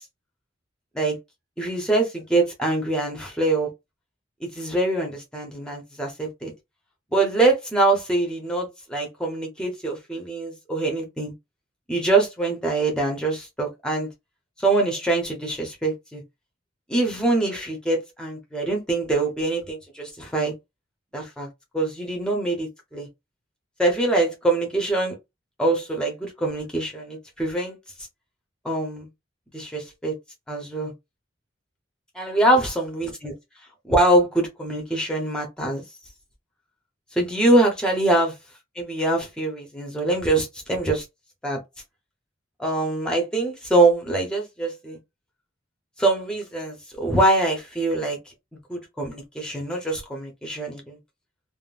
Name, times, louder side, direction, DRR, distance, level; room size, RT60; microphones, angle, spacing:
voice 1, 1.6-3.7 4.4-6.5 7.1-11.3 11.9-14.1 14.6-16.2 16.9-20.5 21.1-21.5 21.7-23.1 23.8-25.1 25.6-27.8 28.6-29.1 29.5-30.1 30.5-30.9 32.1-33.3 33.8-35.8 37.1-38.3 38.8-41.0 41.4-41.6 42.6-45.0 46.0-48.2 48.7-51.0, right 2 dB, 5° left, 0.8 m, -24 dB
3.6 x 2.1 x 2.4 m
head